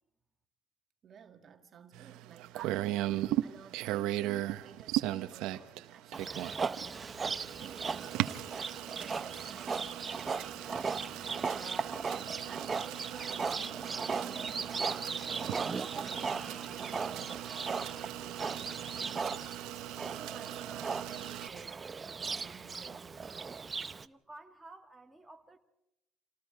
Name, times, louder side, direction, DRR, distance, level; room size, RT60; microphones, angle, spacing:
voice 1, 1.0-8.4 9.0-12.0 12.5-13.6 13.9-19.5 20.1-23.5, right 7 dB, 45° right, 1.7 m, -54 dB
sound 1, 1.9-21.5, right 15 dB, 80° right, 1.0 m, -38 dB
Livestock farm animals working animals, 6.1-24.0, right 5 dB, 25° right, 0.8 m, -37 dB
voice 2, 24.0-25.6, right 2 dB, 5° right, 2.2 m, -53 dB
28.5 x 19.0 x 4.8 m
cardioid pair, 100°, 0 cm